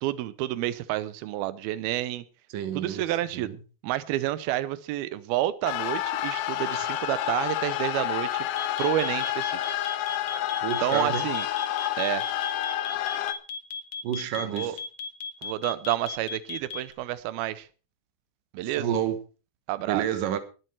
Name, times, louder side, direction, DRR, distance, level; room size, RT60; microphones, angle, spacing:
voice 1, 0.0-2.2 2.7-3.5 3.8-8.5 8.8-9.6 10.8-11.5 12.0-12.3 14.5-14.8 15.4-17.7 18.5-18.9 19.7-20.0, right 14 dB, 85° right, 16 dB, 2.7 m, -29 dB
voice 2, 2.5-3.0 3.3-3.6 10.6-11.2 14.0-14.8 18.8-19.2 19.8-20.4, right 10 dB, 65° right, 10 dB, 2.9 m, -29 dB
sound 1, 5.7-13.3, left 13 dB, 70° left, 2.1 m, -29 dB
sound 2, 8.6-16.9, left 4 dB, 55° left, 1.9 m, -35 dB
20.5 x 7.8 x 4.4 m, 0.34 s
omnidirectional pair, 4.3 m